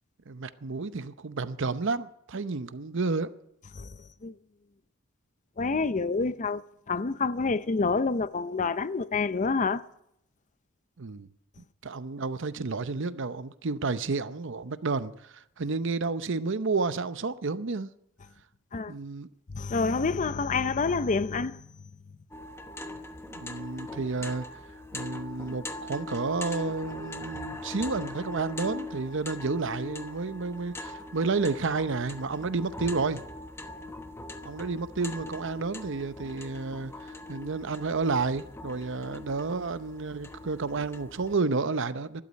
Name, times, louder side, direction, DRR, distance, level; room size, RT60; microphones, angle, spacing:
voice 1, 0.3-3.3 11.0-11.3 11.8-17.9 18.9-19.3 23.3-24.5 24.9-33.2 34.4-42.2, right 4 dB, 65° right, 0.8 m, -31 dB
voice 2, 3.7-4.4 5.6-9.8 18.7-18.9 19.5-21.6, left 4 dB, 40° left, 0.6 m, -28 dB
sound 1, 22.3-41.4, left 2 dB, 10° left, 1.0 m, -41 dB
12.5 x 11.5 x 9.7 m
head